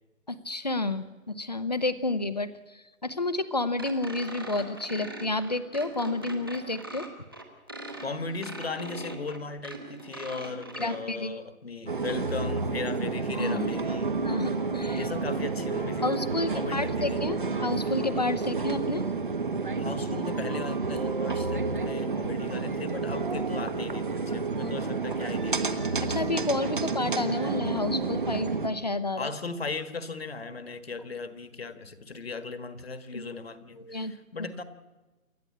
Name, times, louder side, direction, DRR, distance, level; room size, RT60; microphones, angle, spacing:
voice 1, 0.3-7.1 10.8-11.4 13.4-13.7 14.2-15.1 16.0-17.4 17.6-19.0 24.6-24.7 26.0-29.3 33.1-33.2 33.8-34.1, left 2 dB, 30° left, 13 dB, 0.8 m, -30 dB
sound 1, 3.8-11.0, right 2 dB, 15° right, 1.0 m, -41 dB
voice 2, 8.0-14.2 14.9-16.1 16.4-17.2 19.8-25.7 29.2-34.6, left 4 dB, 45° left, 11 dB, 1.6 m, -37 dB
sound 2, 11.9-28.7, right 4 dB, 35° right, 1.3 m, -30 dB
28.0 x 12.0 x 8.6 m, 1.2 s
hypercardioid pair, 175°, 42 cm